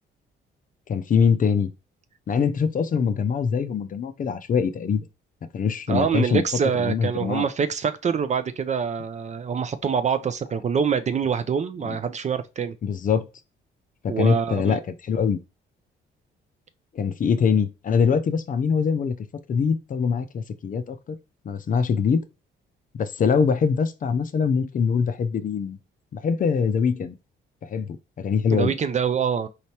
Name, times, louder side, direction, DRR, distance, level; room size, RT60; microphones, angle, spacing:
voice 1, 0.9-1.7 2.3-5.0 5.5-6.4 6.8-7.5 11.8-12.0 12.8-13.3 14.0-15.4 16.9-19.2 19.5-21.2 21.4-22.2 22.9-25.8 26.1-27.1 27.6-28.7, left 6 dB, 45° left, 0.5 m, -23 dB
voice 2, 5.9-12.8 14.1-14.8 28.5-29.5, right 6 dB, 35° right, 0.4 m, -25 dB
4.3 x 3.2 x 2.8 m
cardioid pair, 90°, 20 cm